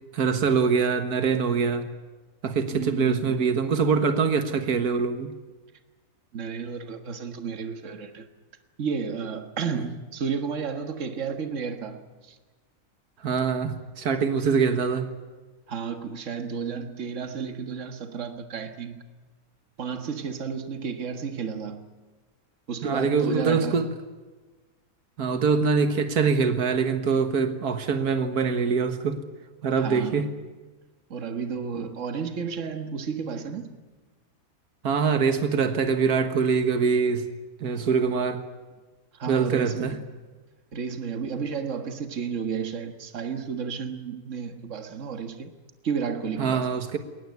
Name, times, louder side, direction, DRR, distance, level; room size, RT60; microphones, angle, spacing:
voice 1, 0.1-1.9 2.4-5.3 9.7-9.9 13.2-15.1 22.8-23.9 25.2-29.2 29.6-30.3 34.8-37.3 37.6-38.4 39.3-40.0 46.4-47.0, right 5 dB, 85° right, 1.9 m, -24 dB
voice 2, 2.7-3.6 6.3-8.3 8.8-12.4 15.7-19.0 19.8-21.9 22.7-23.8 29.8-30.3 31.1-33.8 39.1-40.0 40.7-45.5 45.8-46.8, right 6 dB, 55° right, 1.9 m, -32 dB
21.5 x 19.0 x 9.5 m
omnidirectional pair, 1.6 m